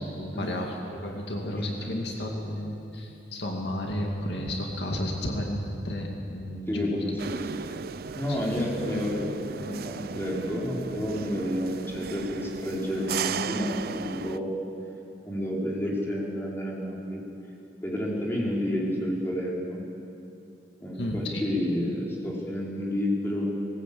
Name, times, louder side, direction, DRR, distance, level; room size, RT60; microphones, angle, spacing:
voice 1, 0.1-7.0 7.6-7.9 8.3-8.6 20.9-21.4, left 1 dB, 70° left, 1 dB, 2.3 m, -32 dB
voice 2, 6.7-7.4 8.1-14.5 15.2-17.2 17.8-19.8 20.8-23.5, left 1 dB, 15° left, -4 dB, 4.2 m, -30 dB
sound 1, 7.2-14.4, right 6 dB, 55° right, 0.4 m, -36 dB
19.5 x 19.5 x 8.6 m, 2.8 s
head